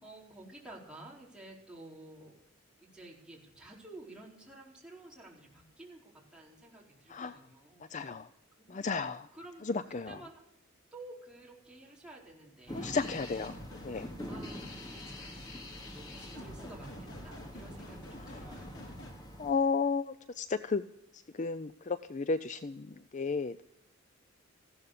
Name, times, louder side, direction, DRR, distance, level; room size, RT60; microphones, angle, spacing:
voice 1, 0.0-2.4 2.8-6.0 6.3-7.8 8.7-8.9 9.3-10.4 10.9-13.0 14.3-18.8, right 2 dB, 5° right, -4 dB, 4.4 m, -52 dB
voice 2, 7.9-8.3 8.7-9.3 9.6-10.2 12.7-13.5 13.8-14.1 19.4-20.8 21.4-23.6, left 4 dB, 35° left, 13 dB, 0.5 m, -33 dB
sound 1, 12.7-19.5, equal, 20° left, 2.4 m, -45 dB
sound 2, 12.9-19.1, left 2 dB, 85° left, 4.5 m, -48 dB
15.0 x 12.5 x 6.7 m, 0.80 s
head